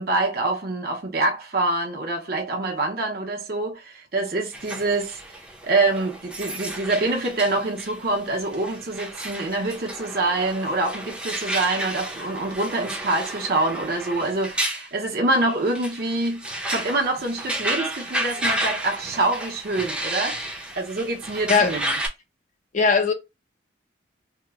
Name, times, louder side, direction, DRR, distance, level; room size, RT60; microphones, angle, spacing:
voice 1, 0.0-5.2 5.6-16.4 16.7-20.4 20.8-21.9, right 2 dB, 50° right, 0.8 m, -25 dB
sound 1, 4.5-22.1, right 1 dB, 5° right, 0.6 m, -32 dB
voice 2, 22.7-23.1, left 5 dB, 40° left, 0.4 m, -19 dB
2.8 x 2.1 x 3.5 m
head